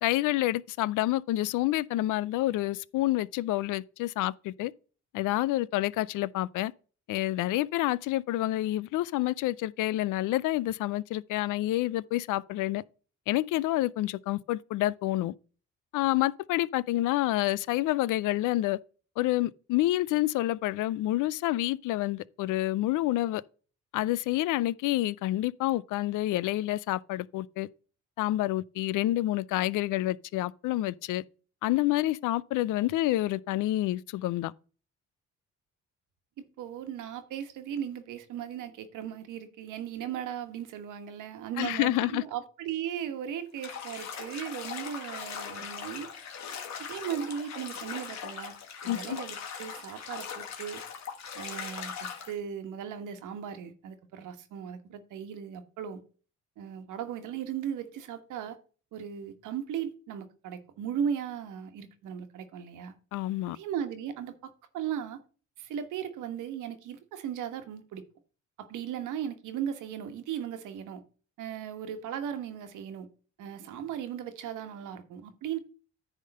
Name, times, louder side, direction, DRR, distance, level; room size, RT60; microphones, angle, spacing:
voice 1, 0.0-4.7 5.1-6.7 7.1-12.8 13.3-15.3 15.9-18.8 19.2-23.4 23.9-27.7 28.2-31.2 31.6-34.5 41.6-42.2 48.9-49.0 63.1-63.6, left 16 dB, 90° left, 0.5 m, -28 dB
voice 2, 36.4-46.1 46.8-48.6 48.8-50.8 51.3-56.0 56.6-58.6 58.9-62.9 63.5-65.2 65.6-68.0 68.6-71.0 71.4-73.1 73.4-75.6, right 9 dB, 85° right, 1.4 m, -37 dB
Bathtub (filling or washing), 43.6-52.3, left 7 dB, 65° left, 1.9 m, -40 dB
10.0 x 3.6 x 6.6 m
cardioid pair, 90°, 30 cm